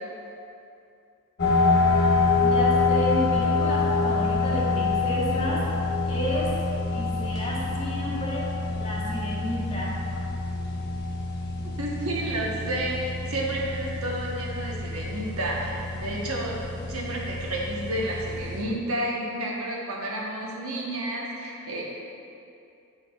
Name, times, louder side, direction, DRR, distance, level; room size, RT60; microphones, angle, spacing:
sound 1, 1.4-18.6, left 3 dB, 50° left, 1.0 m, -26 dB
voice 1, 2.4-5.7 6.1-6.5 6.9-8.5 8.8-9.9, left 1 dB, 25° left, -5 dB, 1.1 m, -31 dB
voice 2, 11.6-16.6 16.9-21.8, right 1 dB, 75° right, -3 dB, 1.0 m, -31 dB
10.5 x 4.6 x 2.3 m, 2.6 s
head